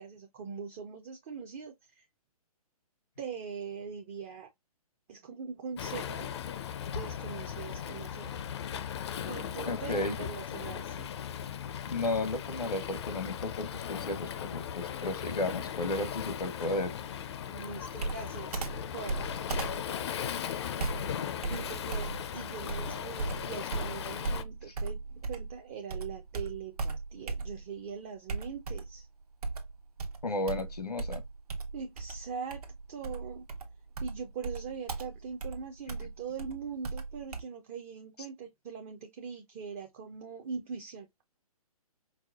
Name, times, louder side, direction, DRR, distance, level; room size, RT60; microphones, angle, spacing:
voice 1, 0.0-2.1 3.2-4.5 5.1-6.3 6.9-8.3 9.2-11.1 17.4-19.3 21.5-25.0 25.3-29.1 31.7-33.5 34.0-41.1, right 6 dB, 25° right, 0.4 m, -42 dB
Waves surf, 5.8-24.4, left 8 dB, 45° left, 0.4 m, -38 dB
voice 2, 9.7-10.2 11.9-16.9 30.2-31.2, left 2 dB, 90° left, 1.0 m, -33 dB
Computer keyboard, 18.0-25.6 25.9-27.8 28.3-29.0 29.4-37.4, right 3 dB, 75° right, 1.0 m, -37 dB
4.7 x 2.1 x 2.3 m
hypercardioid pair, 140°, 19 cm